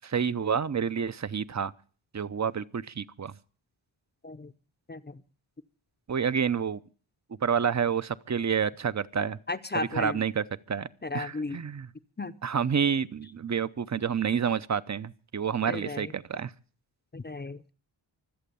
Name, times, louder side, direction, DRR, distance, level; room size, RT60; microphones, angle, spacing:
voice 1, 0.0-1.7 2.1-3.3 6.1-6.8 7.4-9.4 9.7-10.9 11.1-11.9 12.4-16.5, right 7 dB, 35° right, 0.7 m, -29 dB
voice 2, 9.5-10.2 11.0-11.6 12.2-12.3 15.7-16.1 17.1-17.7, left 3 dB, 20° left, 0.7 m, -34 dB
25.0 x 8.4 x 6.9 m
wide cardioid pair, 110°, 48 cm